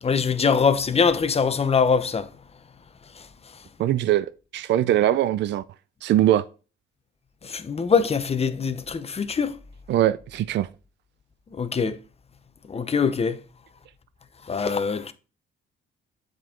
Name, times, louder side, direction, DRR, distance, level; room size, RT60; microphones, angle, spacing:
voice 1, 0.0-2.3 3.2-3.3 7.4-9.6 11.5-12.0 12.7-13.4 14.5-15.1, left 5 dB, 30° left, 0.9 m, -23 dB
voice 2, 3.8-5.6 6.0-6.4 9.9-10.7, right 12 dB, 65° right, 0.4 m, -21 dB
7.6 x 5.3 x 3.8 m
cardioid pair, 90°, 20 cm